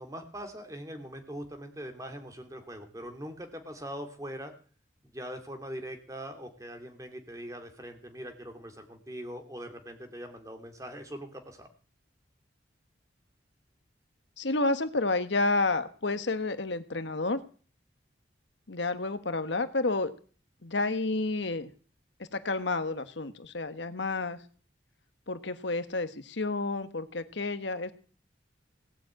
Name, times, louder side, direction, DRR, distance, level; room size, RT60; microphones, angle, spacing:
voice 1, 0.0-4.5 5.1-11.7, equal, 15° right, 5 dB, 2.7 m, -42 dB
voice 2, 14.4-17.4 18.7-20.1 20.6-21.7 22.3-24.4 25.3-27.9, left 3 dB, 70° left, 10 dB, 1.3 m, -30 dB
17.5 x 7.5 x 8.9 m, 0.41 s
head